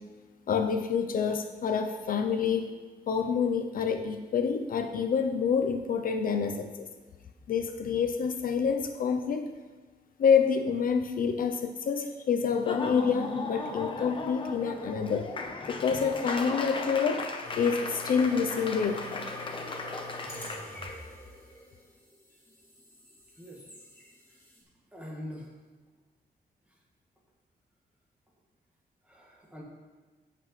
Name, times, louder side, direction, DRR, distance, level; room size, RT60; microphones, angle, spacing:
voice 1, 0.5-2.7 3.1-6.9 7.5-9.5 10.2-15.3 15.7-17.2 17.6-19.1, left 6 dB, 60° left, 6 dB, 0.5 m, -27 dB
Laughter / Applause, 12.5-20.9, left 3 dB, 30° left, 0.8 m, -37 dB
sound 1, 17.4-24.6, left 1 dB, 15° left, 2.5 m, -44 dB
voice 2, 24.9-25.5 29.0-29.6, equal, 10° right, -3 dB, 1.8 m, -43 dB
16.5 x 6.0 x 3.2 m, 1.4 s
wide cardioid pair, 180°, 16 cm